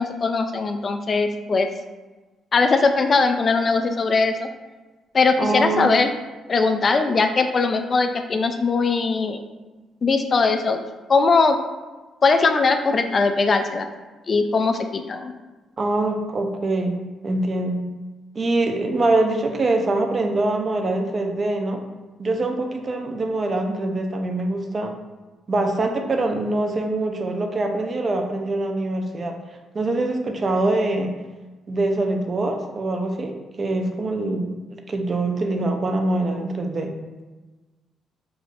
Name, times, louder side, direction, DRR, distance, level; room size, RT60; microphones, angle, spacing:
voice 1, 0.0-1.7 2.5-4.5 5.1-6.1 6.5-9.4 10.0-10.8 11.1-11.6 12.2-13.9 14.3-15.3, left 4 dB, 40° left, 7 dB, 0.3 m, -20 dB
voice 2, 5.4-5.9 15.8-17.9 18.3-21.8 22.2-24.9 25.5-29.4 29.7-31.1 31.7-37.0, right 2 dB, 40° right, 4 dB, 0.5 m, -24 dB
4.6 x 2.5 x 2.5 m, 1.2 s
cardioid pair, 90°, 0 cm